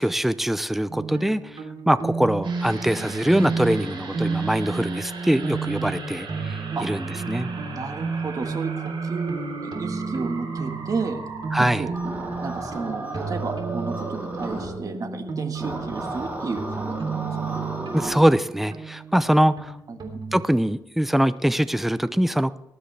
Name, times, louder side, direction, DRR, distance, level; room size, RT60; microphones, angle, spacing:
voice 1, 0.0-1.4 1.9-7.5 11.5-11.8 17.9-19.5 20.3-22.5, right 1 dB, 5° right, 14 dB, 0.6 m, -22 dB
sound 1, 0.9-20.4, right 4 dB, 65° right, 3.2 m, -32 dB
sound 2, 2.4-17.1 17.4-17.5, right 4 dB, 90° right, 5.6 m, -39 dB
voice 2, 7.7-11.2 11.6-11.9 12.4-17.6 19.9-20.2, right 4 dB, 45° right, 5 dB, 1.7 m, -32 dB
sound 3, 11.9-14.7 15.5-18.2, right 1 dB, 20° right, 4.8 m, -34 dB
19.5 x 12.5 x 3.4 m, 0.81 s
wide cardioid pair, 110°, 8 cm